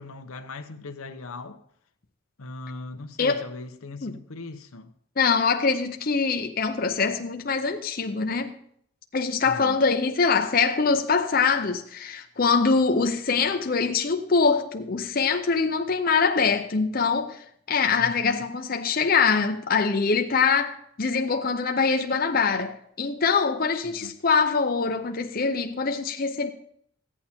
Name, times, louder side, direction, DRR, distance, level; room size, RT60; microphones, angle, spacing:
voice 1, 0.0-1.6 2.4-5.0 9.4-9.8 18.0-18.5 23.8-24.1, left 3 dB, 90° left, 0.9 m, -39 dB
voice 2, 5.2-8.5 9.1-26.5, left 5 dB, 45° left, 0.6 m, -24 dB
15.0 x 8.8 x 4.4 m
head